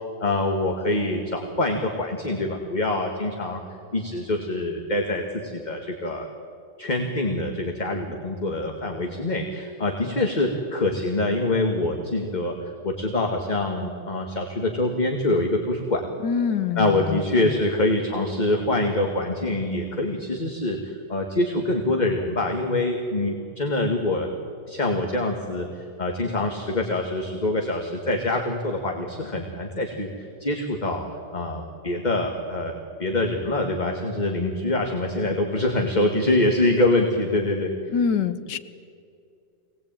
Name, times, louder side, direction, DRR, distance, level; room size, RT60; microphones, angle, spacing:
voice 1, 0.2-3.6 3.9-6.3 6.8-12.5 12.8-16.0 16.8-24.3 24.7-31.0 31.3-37.7, left 2 dB, 25° left, 2 dB, 1.9 m, -25 dB
voice 2, 16.2-17.5 37.9-38.6, left 6 dB, 85° left, 11 dB, 1.7 m, -25 dB
25.0 x 19.0 x 9.0 m, 2.4 s
omnidirectional pair, 1.9 m